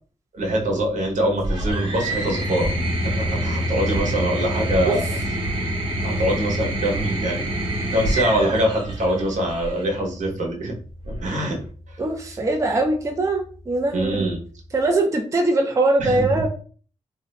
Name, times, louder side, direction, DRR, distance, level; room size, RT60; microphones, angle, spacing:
voice 1, 0.3-2.7 3.0-5.2 6.0-7.5 7.9-10.8 11.1-12.0 13.9-14.4 16.0-16.5, right 1 dB, 75° right, 1 dB, 1.0 m, -24 dB
sound 1, 1.4-9.8 11.0-11.7, right 1 dB, 45° right, 1.0 m, -27 dB
sound 2, 2.6-14.9, left 1 dB, 35° left, 0.5 m, -34 dB
voice 2, 12.0-14.3 14.7-16.5, right 2 dB, 25° right, 1 dB, 0.5 m, -21 dB
2.6 x 2.2 x 3.9 m, 0.42 s
wide cardioid pair, 160°, 13 cm